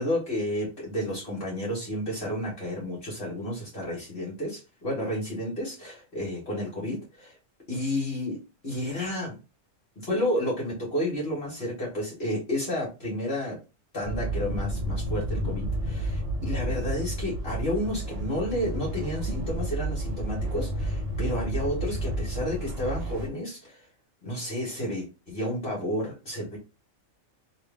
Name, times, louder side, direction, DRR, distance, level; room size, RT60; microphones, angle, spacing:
voice 1, 0.0-7.4 7.7-8.4 8.6-9.4 10.0-13.6 13.9-23.8 24.2-26.6, left 1 dB, 50° left, -3 dB, 1.6 m, -31 dB
sound 1, 14.0-23.3, right 1 dB, 50° right, 1.0 m, -31 dB
3.2 x 2.6 x 3.4 m, 0.28 s
omnidirectional pair, 1.4 m